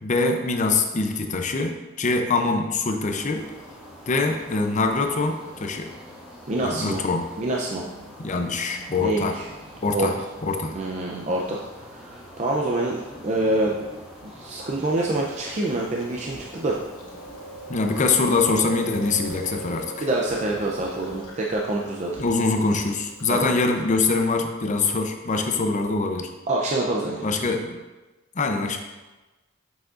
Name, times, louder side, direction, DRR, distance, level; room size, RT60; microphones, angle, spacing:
voice 1, 0.0-3.4 4.1-5.9 6.6-7.2 8.2-9.3 9.8-10.2 10.4-10.7 17.7-20.1 22.2-26.3 27.2-27.8 28.4-28.8, left 3 dB, 40° left, 4 dB, 0.6 m, -24 dB
sound 1, 3.1-21.2, equal, 5° right, 1.8 m, -44 dB
voice 2, 6.5-7.1 7.4-7.8 9.0-9.5 9.9-10.1 10.7-13.9 14.4-16.8 20.0-22.2 23.3-23.5 26.5-27.4, right 2 dB, 35° right, -2 dB, 0.5 m, -26 dB
Chewing mastication, 14.9-23.8, right 2 dB, 80° left, 1.3 m, -41 dB
7.0 x 6.3 x 2.5 m, 1.2 s
head